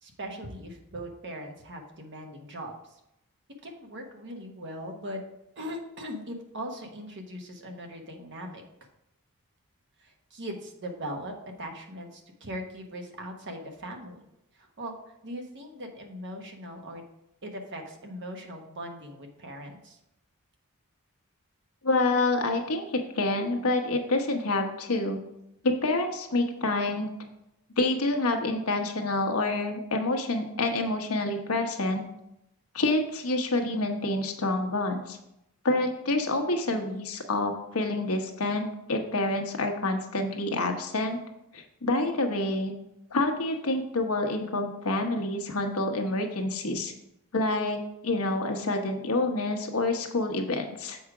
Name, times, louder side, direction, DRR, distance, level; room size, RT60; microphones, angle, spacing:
voice 1, 0.0-3.0 3.6-5.2 5.6-8.6 10.0-14.2 14.6-17.0 17.4-20.0, equal, 55° right, 3 dB, 1.2 m, -40 dB
voice 2, 21.8-25.2 25.6-27.1 27.8-32.0 32.7-35.2 35.6-41.2 41.5-42.7 43.1-46.9 47.3-51.0, left 2 dB, 75° left, 4 dB, 1.1 m, -27 dB
7.1 x 4.9 x 4.8 m, 0.84 s
head